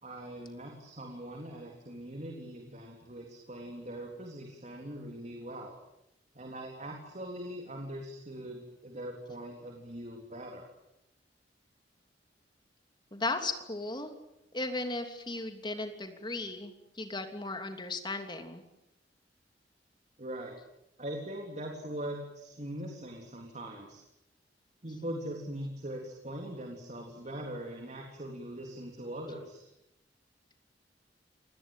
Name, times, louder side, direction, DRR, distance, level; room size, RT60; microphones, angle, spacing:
voice 1, 0.0-5.8 6.3-10.7 20.2-20.6 21.0-24.0 24.8-29.7, right 1 dB, 40° right, 2 dB, 3.7 m, -41 dB
voice 2, 13.1-14.1 14.5-18.6, left 2 dB, 25° left, 6 dB, 3.1 m, -36 dB
27.5 x 20.0 x 9.2 m, 0.86 s
head